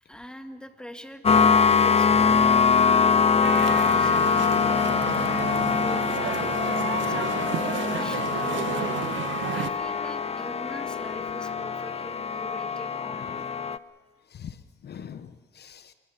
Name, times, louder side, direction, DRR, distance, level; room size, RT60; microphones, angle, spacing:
voice 1, 0.0-3.0 3.7-6.7 7.0-8.9 9.5-13.5, left 1 dB, 5° left, 6 dB, 2.0 m, -43 dB
sound 1, 1.2-13.8, left 5 dB, 30° left, 0.7 m, -23 dB
sound 2, 3.4-9.7, right 11 dB, 75° right, 1.1 m, -32 dB
voice 2, 7.0-7.3 9.3-9.4 11.2-11.3 13.1-13.4 14.3-14.6 14.8-15.9, left 8 dB, 55° left, 11 dB, 1.0 m, -44 dB
28.0 x 21.5 x 5.8 m, 1.5 s
cardioid pair, 90°, 20 cm